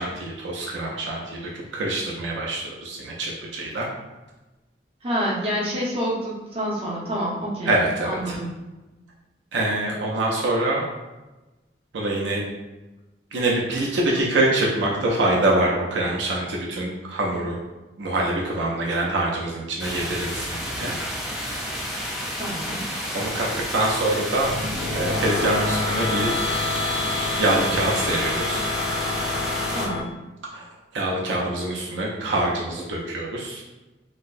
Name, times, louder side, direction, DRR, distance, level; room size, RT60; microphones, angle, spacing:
voice 1, 0.0-3.9 7.6-8.4 9.5-10.9 11.9-12.4 13.3-17.6 18.0-20.9 23.1-24.5 24.9-26.3 27.4-28.7 30.5-30.6 30.9-33.6, right 1 dB, 80° right, -3 dB, 0.5 m, -25 dB
voice 2, 5.0-7.7 8.0-8.5 22.4-22.9 29.7-30.1, equal, 30° right, -6 dB, 0.9 m, -27 dB
sound 1, 19.8-29.9, equal, ahead, 0.4 m, -31 dB
sound 2, 24.3-30.0, left 3 dB, 75° left, 0.5 m, -27 dB
4.2 x 2.0 x 2.5 m, 1.1 s
head